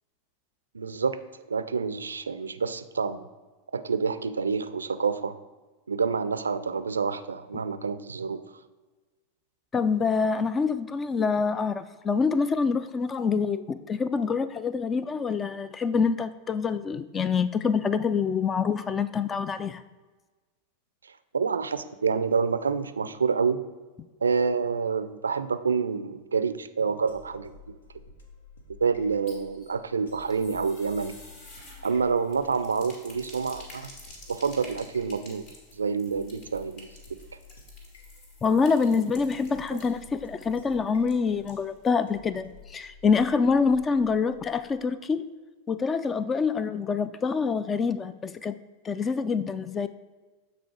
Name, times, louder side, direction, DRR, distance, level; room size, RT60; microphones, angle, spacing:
voice 1, 0.7-1.2 1.5-3.2 3.7-5.4 5.9-8.4 21.3-23.6 24.2-27.7 28.8-31.2 31.8-33.9 34.3-35.4 35.8-36.9, right 5 dB, 75° right, 12 dB, 0.4 m, -27 dB
voice 2, 9.7-19.8 38.4-45.2 45.7-48.6 48.8-49.9, left 5 dB, 20° left, 14 dB, 0.3 m, -26 dB
sound 1, 27.1-44.8, left 4 dB, 70° left, 1.0 m, -52 dB
sound 2, 29.0-42.0 42.3-42.4 42.7-42.8, left 1 dB, 45° left, 2.1 m, -51 dB
8.1 x 4.1 x 4.6 m, 1.3 s
figure-of-eight pair, 90°, 0 cm